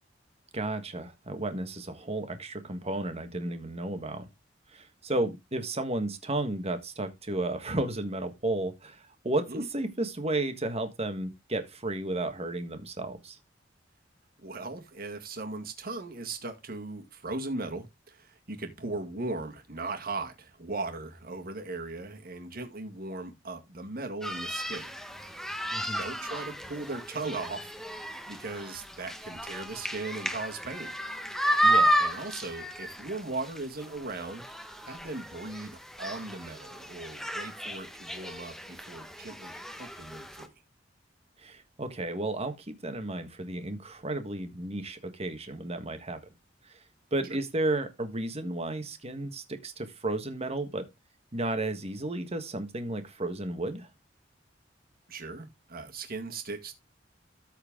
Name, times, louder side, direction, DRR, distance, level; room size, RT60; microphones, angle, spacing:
voice 1, 0.5-4.3 4.7-13.4 25.7-26.0 31.6-31.9 41.4-46.2 46.6-46.8 47.1-50.9 51.3-53.9, right 2 dB, 35° right, 1.5 m, -33 dB
voice 2, 14.4-25.4 26.0-31.0 32.0-34.5 34.9-40.5 47.2-47.4 55.1-56.7, right 3 dB, 50° right, 1.9 m, -38 dB
sound 1, 24.2-40.5, equal, ahead, 1.2 m, -33 dB
13.5 x 4.5 x 3.7 m
head